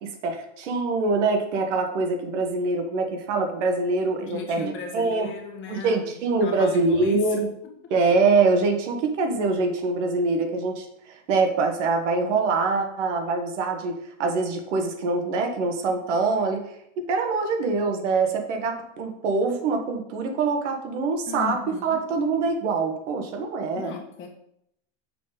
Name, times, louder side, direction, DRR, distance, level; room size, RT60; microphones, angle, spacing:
voice 1, 0.0-5.3 5.7-7.5 7.9-10.9 11.3-16.6 17.0-23.9, right 3 dB, 85° right, 4 dB, 1.4 m, -24 dB
voice 2, 4.2-7.4 7.6-7.7 21.3-22.0 23.7-24.3, left 7 dB, 35° left, 1 dB, 1.5 m, -37 dB
6.6 x 4.0 x 5.2 m, 0.75 s
supercardioid pair, 145°, 35 cm